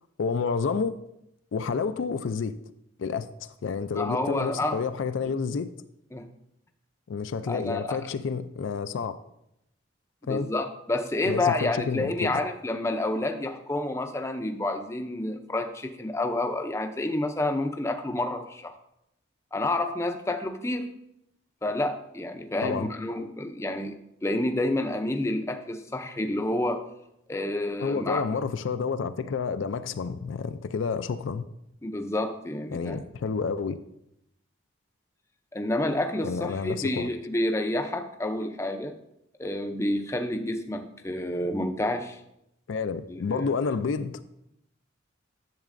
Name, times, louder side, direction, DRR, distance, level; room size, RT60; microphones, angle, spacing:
voice 1, 0.2-0.9 1.5-2.6 3.0-5.7 7.1-9.1 10.3-10.5 11.3-12.3 22.6-22.9 27.8-31.4 32.7-33.8 36.2-37.1 42.7-44.2, left 5 dB, 75° left, 0.4 m, -29 dB
voice 2, 3.9-4.8 6.1-6.3 7.5-8.0 10.2-18.7 19.5-20.9 21.6-24.0 24.2-26.8 27.3-28.2 31.8-33.0 35.5-38.9 39.4-42.2 43.1-43.5, left 1 dB, 15° left, 0.4 m, -29 dB
10.5 x 7.3 x 2.5 m
head